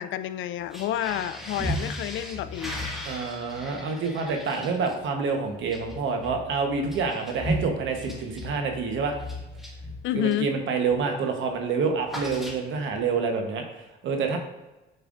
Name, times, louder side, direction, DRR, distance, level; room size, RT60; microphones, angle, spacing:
voice 1, 0.0-2.8 10.0-10.5, left 11 dB, 75° left, 13 dB, 0.4 m, -29 dB
sound 1, 0.6-10.5 10.9-11.2 11.4-13.0, equal, ahead, 1.5 m, -36 dB
voice 2, 3.0-9.2 10.1-14.4, right 5 dB, 75° right, 4 dB, 1.0 m, -27 dB
7.5 x 5.5 x 2.5 m, 1.0 s
cardioid pair, 90°, 20 cm